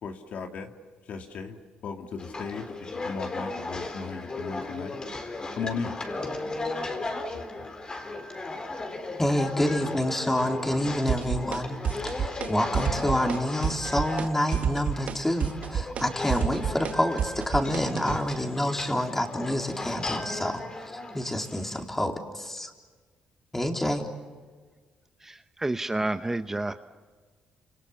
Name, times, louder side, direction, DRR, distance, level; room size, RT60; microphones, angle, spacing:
voice 1, 0.0-0.7 1.1-1.6 1.8-2.6 2.9-5.0 5.6-5.9, left 5 dB, 60° left, 2.6 m, -36 dB
sound 1, 2.2-21.8, left 2 dB, 30° left, 4.1 m, -36 dB
voice 2, 9.2-11.8 12.0-20.6 20.9-22.7 23.5-24.1, left 1 dB, 10° left, 3.8 m, -28 dB
sound 2, 11.1-11.6 11.8-12.5 12.7-13.4 13.6-14.3 14.5-18.2, right 8 dB, 60° right, 1.2 m, -29 dB
voice 3, 25.6-26.7, right 2 dB, 15° right, 1.0 m, -29 dB
29.5 x 27.5 x 7.3 m
cardioid pair, 90°, 3 cm